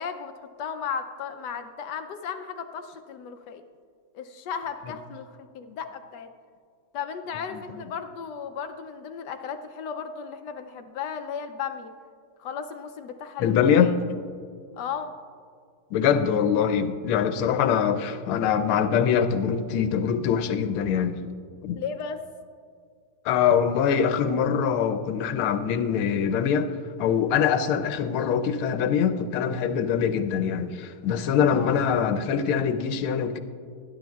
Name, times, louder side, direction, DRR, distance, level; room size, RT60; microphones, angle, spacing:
voice 1, 0.0-3.6 4.1-6.3 6.9-11.9 12.4-13.9 14.8-15.2 21.7-22.2 27.6-27.7 31.5-31.8, left 6 dB, 70° left, 7 dB, 1.0 m, -35 dB
voice 2, 13.4-13.9 15.9-21.2 21.6-21.8 23.2-26.7 27.0-33.4, left 7 dB, 90° left, 9 dB, 1.5 m, -23 dB
19.0 x 10.5 x 2.3 m, 2.2 s
omnidirectional pair, 2.3 m